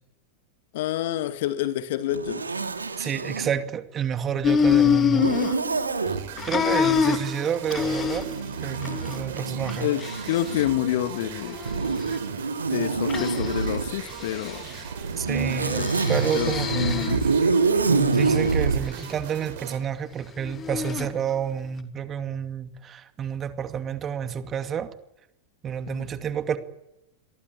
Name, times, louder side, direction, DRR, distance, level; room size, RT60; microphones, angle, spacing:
voice 1, 0.7-2.4 9.8-11.6 12.6-14.6 15.8-15.9 16.3-17.3 25.9-26.1, left 12 dB, 55° left, 2.2 m, -28 dB
Zipper (clothing), 2.1-3.5 5.1-6.2 7.6-10.9 11.7-13.9 14.9-18.8, right 4 dB, 75° right, 2.8 m, -26 dB
voice 2, 2.9-5.3 6.4-8.3 8.6-9.9 15.2-15.8 16.1-17.2 17.9-24.9 25.6-26.6, right 8 dB, 25° right, 2.4 m, -29 dB
sound 1, 4.4-6.1 6.4-8.5 8.8-9.2 9.6-10.6 11.3-12.2 13.1-13.7 14.0-14.8 15.6-17.3 17.8-18.6 20.4-21.1, left 7 dB, 25° left, 3.0 m, -26 dB
sound 2, 6.1-19.8, right 9 dB, 55° right, 5.8 m, -40 dB
28.5 x 23.0 x 8.7 m
figure-of-eight pair, 90°, 0 cm